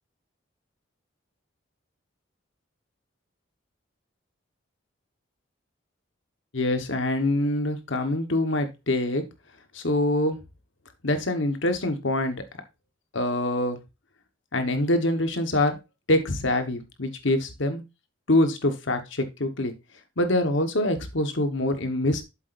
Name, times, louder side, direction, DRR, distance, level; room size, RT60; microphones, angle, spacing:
voice 1, 6.5-9.2 9.7-10.4 11.0-12.4 13.1-13.8 14.5-15.8 16.1-17.8 18.3-19.7 20.2-22.2, left 1 dB, 70° left, 8 dB, 1.3 m, -25 dB
8.4 x 7.3 x 2.6 m, 0.25 s
head